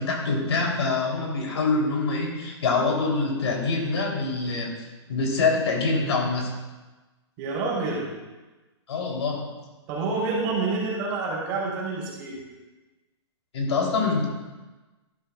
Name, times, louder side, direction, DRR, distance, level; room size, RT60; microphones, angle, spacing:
voice 1, 0.0-6.5 8.9-9.4 13.5-14.3, left 3 dB, 75° left, -1 dB, 3.4 m, -25 dB
voice 2, 7.4-8.1 9.9-12.4, right 3 dB, 30° right, -4 dB, 3.6 m, -28 dB
12.0 x 12.0 x 2.4 m, 1.2 s
hypercardioid pair, 160°, 15 cm